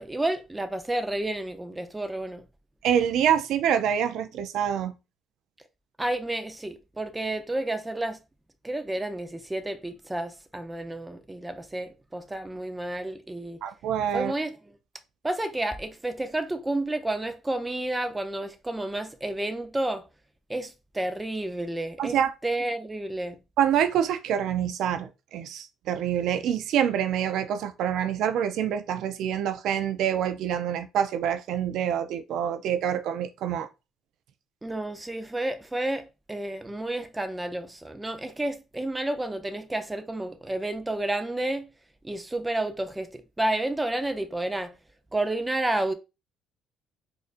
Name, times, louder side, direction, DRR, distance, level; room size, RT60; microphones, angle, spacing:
voice 1, 0.0-2.4 6.0-8.2 8.6-13.6 14.1-14.8 15.2-20.0 20.5-22.2 22.4-23.4 34.6-41.7 42.0-44.8 45.1-45.9, right 1 dB, 10° right, 0.6 m, -30 dB
voice 2, 2.8-4.9 13.6-14.3 22.0-22.3 23.6-33.7, right 9 dB, 75° right, 0.4 m, -26 dB
4.3 x 2.5 x 2.5 m
cardioid pair, 110°, 0 cm